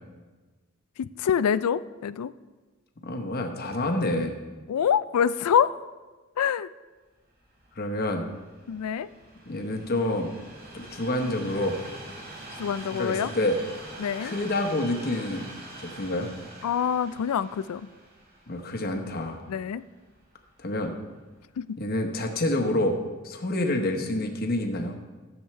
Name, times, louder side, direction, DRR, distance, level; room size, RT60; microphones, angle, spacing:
voice 1, 1.0-2.3 4.7-5.8 6.4-6.7 8.7-9.1 12.6-13.3 14.0-14.3 16.6-17.9 19.5-19.8 21.6-21.8, left 8 dB, 90° left, 15 dB, 0.4 m, -26 dB
voice 2, 3.0-4.4 7.8-8.3 9.5-10.3 10.7-11.8 12.9-13.6 14.2-15.5 15.8-16.3 18.5-19.4 20.6-20.9 21.8-23.0 23.2-24.9, left 1 dB, 45° left, 4 dB, 1.0 m, -28 dB
Train, 7.3-20.5 21.2-21.3, right 1 dB, 45° right, 1.7 m, -45 dB
14.0 x 7.1 x 3.2 m, 1.3 s
head